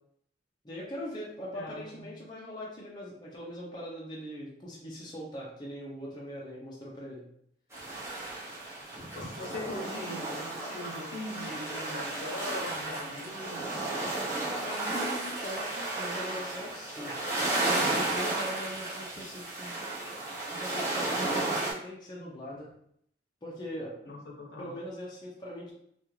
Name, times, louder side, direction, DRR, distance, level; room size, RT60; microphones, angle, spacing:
voice 1, 0.6-7.3 14.4-17.2 17.6-19.7 20.5-22.7 23.4-24.1 24.6-25.7, equal, 25° left, -5 dB, 0.5 m, -41 dB
voice 2, 1.5-2.1 8.7-8.8 9.1-13.7 24.0-24.8, left 1 dB, 65° left, -1 dB, 0.7 m, -41 dB
sound 1, 7.7-21.7, right 2 dB, 15° right, 0.7 m, -33 dB
2.4 x 2.3 x 3.0 m, 0.69 s
head